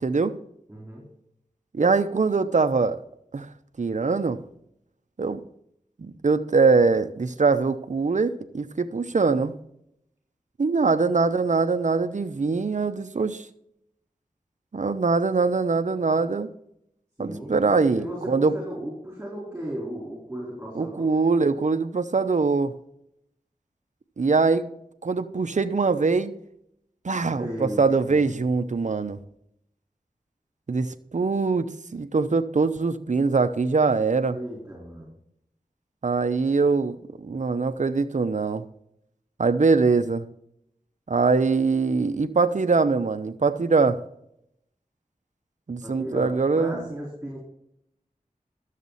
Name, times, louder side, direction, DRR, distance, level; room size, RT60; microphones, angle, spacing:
voice 1, 0.0-0.3 1.7-3.0 3.3-3.5 3.8-4.4 5.2-5.4 6.0-9.5 10.6-13.5 14.7-16.5 17.2-18.5 20.7-22.7 24.2-24.7 25.0-26.3 27.0-29.2 30.7-34.4 36.0-37.0 37.2-38.6 39.4-40.2 41.1-44.0 45.7-46.7, right 4 dB, 55° right, 11 dB, 0.8 m, -23 dB
voice 2, 0.7-1.0 17.2-21.1 27.2-28.3 34.2-35.1 45.8-47.4, equal, 15° right, -4 dB, 4.3 m, -36 dB
12.0 x 7.4 x 4.1 m, 0.77 s
wide cardioid pair, 65°, 15 cm